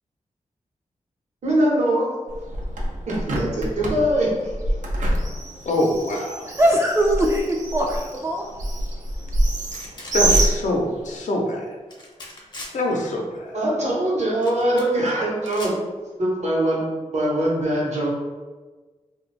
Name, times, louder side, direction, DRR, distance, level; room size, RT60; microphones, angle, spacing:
voice 1, 1.4-2.1 3.1-4.5 13.5-15.7 16.2-18.1, right 1 dB, 65° right, -5 dB, 0.9 m, -22 dB
Bird, 2.3-11.2, right 1 dB, 85° right, 0.5 m, -26 dB
voice 2, 5.6-6.5 10.1-11.7 12.7-13.6, left 1 dB, 75° left, 0 dB, 0.6 m, -24 dB
voice 3, 6.4-8.5, equal, 20° right, -1 dB, 0.3 m, -21 dB
sound 1, 9.7-10.5 11.9-12.7 14.4-15.1 15.4-15.7, left 1 dB, 35° left, 0.6 m, -38 dB
2.5 x 2.2 x 3.2 m, 1.3 s
wide cardioid pair, 90°, 13 cm